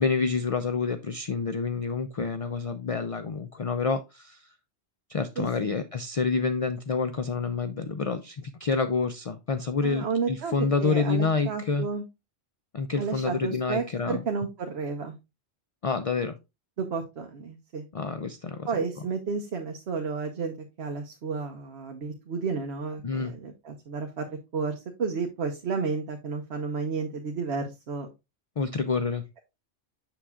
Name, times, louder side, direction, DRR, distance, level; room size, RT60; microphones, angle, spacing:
voice 1, 0.0-4.5 5.1-11.9 12.7-14.2 15.8-16.4 17.9-18.7 23.0-23.3 28.6-29.2, left 4 dB, 50° left, 0.4 m, -28 dB
voice 2, 5.4-5.7 9.8-10.5 10.8-12.0 13.0-15.1 16.8-17.8 18.7-28.1, right 5 dB, 65° right, 1.1 m, -32 dB
7.4 x 6.9 x 2.4 m
omnidirectional pair, 1.2 m